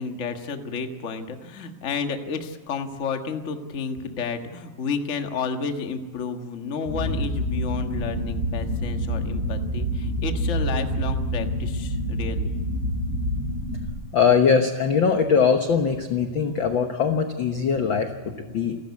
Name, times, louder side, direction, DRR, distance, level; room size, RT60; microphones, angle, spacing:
voice 1, 0.0-12.5, left 5 dB, 40° left, 5 dB, 1.1 m, -31 dB
sound 1, 6.9-13.9, equal, 10° right, 7.9 m, -27 dB
voice 2, 14.1-18.8, left 6 dB, 60° left, 6 dB, 1.2 m, -21 dB
29.5 x 13.0 x 8.4 m, 1.4 s
omnidirectional pair, 3.8 m